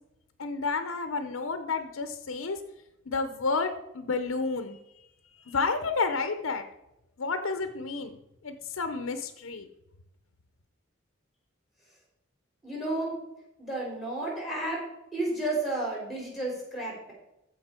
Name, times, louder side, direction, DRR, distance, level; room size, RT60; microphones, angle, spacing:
voice 1, 0.4-2.6 3.1-6.6 7.2-8.2 8.4-9.7, left 4 dB, 85° left, 9 dB, 0.8 m, -31 dB
voice 2, 12.6-13.2 13.6-14.9 15.1-17.1, right 2 dB, ahead, -2 dB, 3.8 m, -32 dB
14.5 x 5.2 x 4.4 m, 0.89 s
head